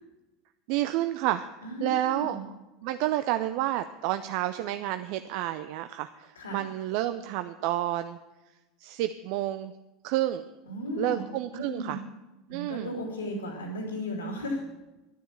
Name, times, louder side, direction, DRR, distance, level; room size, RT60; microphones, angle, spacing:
voice 1, 0.7-1.5 1.8-2.4 2.8-8.2 8.8-9.7 10.0-10.4 11.0-12.0 12.5-12.9, right 14 dB, 60° right, 10 dB, 0.5 m, -30 dB
voice 2, 1.6-2.4 6.3-6.6 10.7-11.2 11.5-12.0 12.5-14.6, equal, 90° left, 1 dB, 2.5 m, -35 dB
12.0 x 9.9 x 7.3 m, 1.1 s
figure-of-eight pair, 75°, 0 cm